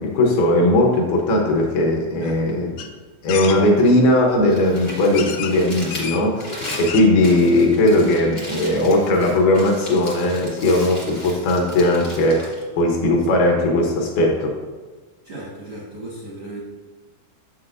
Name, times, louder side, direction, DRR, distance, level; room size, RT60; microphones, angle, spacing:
voice 1, 0.0-2.7 3.2-14.6, left 1 dB, 75° left, 0 dB, 2.6 m, -18 dB
voice 2, 2.2-2.6 15.2-16.6, right 1 dB, 85° right, -7 dB, 1.3 m, -36 dB
sound 1, 2.8-2.9 3.3-3.6 4.5-4.6 5.1-5.6 5.9-6.2 6.6-7.2 7.6-7.7 7.9-8.0, left 8 dB, 90° left, 2.1 m, -30 dB
Crumpling crinkling, 4.5-13.5, equal, 50° left, 0.8 m, -36 dB
7.7 x 7.3 x 2.6 m, 1.3 s
omnidirectional pair, 5.0 m